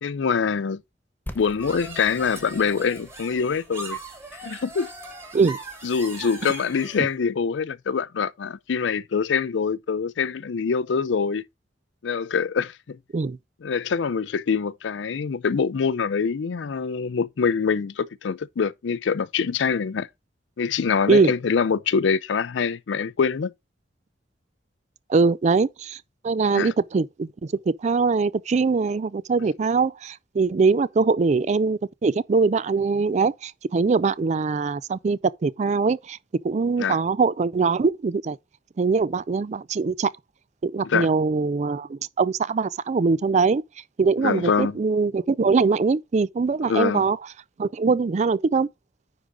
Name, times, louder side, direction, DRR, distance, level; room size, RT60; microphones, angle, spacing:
voice 1, 0.0-0.8 1.3-4.0 4.4-4.9 5.8-11.4 12.0-13.0 13.6-20.1 20.6-23.5 26.5-26.7 36.8-37.0 40.8-41.1 44.2-44.8 46.6-47.0, left 5 dB, 80° left, 0.4 m, -24 dB
sound 1, 1.3-7.0, left 1 dB, 10° left, 0.8 m, -46 dB
sound 2, 1.6-7.1, right 3 dB, 15° right, 2.7 m, -39 dB
voice 2, 25.1-26.0 26.2-27.5 27.8-36.2 36.4-38.4 38.8-40.1 40.6-43.6 44.0-47.2 47.6-48.7, right 4 dB, 40° right, 0.4 m, -22 dB
9.8 x 3.9 x 4.7 m
head